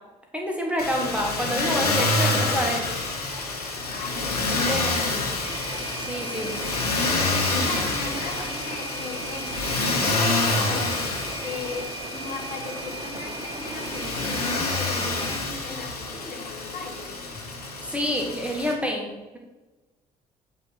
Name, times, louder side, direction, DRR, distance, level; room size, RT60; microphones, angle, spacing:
voice 1, 0.3-2.8 4.5-5.0 6.1-6.5 17.8-19.4, equal, 5° right, 0 dB, 2.1 m, -28 dB
Motor vehicle (road), 0.8-18.7, left 3 dB, 85° left, 1.2 m, -27 dB
voice 2, 0.8-1.2 3.9-5.4 7.3-11.0 11.4-17.1, left 3 dB, 45° left, 0 dB, 2.6 m, -37 dB
sound 1, 5.4-15.4, right 4 dB, 25° right, 1.5 m, -37 dB
8.3 x 4.8 x 6.8 m, 1.1 s
figure-of-eight pair, 45°, 19 cm